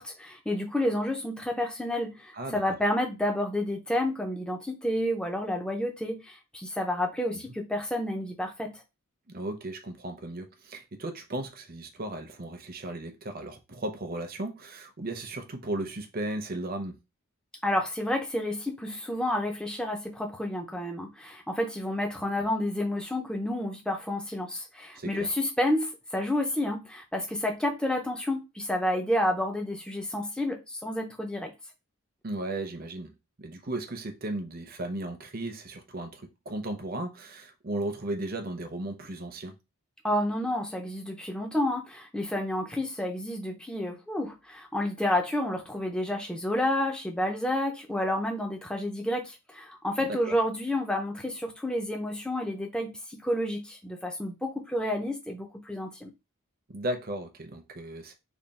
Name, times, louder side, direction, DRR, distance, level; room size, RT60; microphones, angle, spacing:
voice 1, 0.0-8.7 17.6-31.5 40.0-56.1, left 1 dB, 5° left, 0.5 m, -30 dB
voice 2, 9.3-17.0 24.9-25.3 32.2-33.1 33.4-39.5 50.3-50.4 56.7-58.1, right 1 dB, 40° right, 0.6 m, -35 dB
3.5 x 2.3 x 4.0 m
head